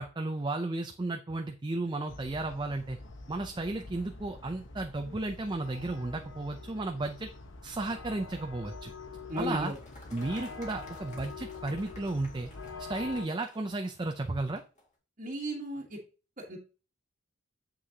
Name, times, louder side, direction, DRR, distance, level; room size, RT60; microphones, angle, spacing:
voice 1, 0.0-3.0 3.3-7.3 7.6-8.9 9.4-9.7 10.1-12.5 12.9-14.6, right 2 dB, 20° right, 5 dB, 0.5 m, -34 dB
sound 1, 2.1-13.3, left 3 dB, 60° left, 1.1 m, -45 dB
Applause, 9.3-14.9, left 2 dB, 35° left, 2.0 m, -55 dB
voice 2, 9.3-9.8 15.2-16.0 16.4-16.6, equal, 40° right, -3 dB, 1.4 m, -35 dB
7.6 x 6.2 x 2.8 m, 0.35 s
head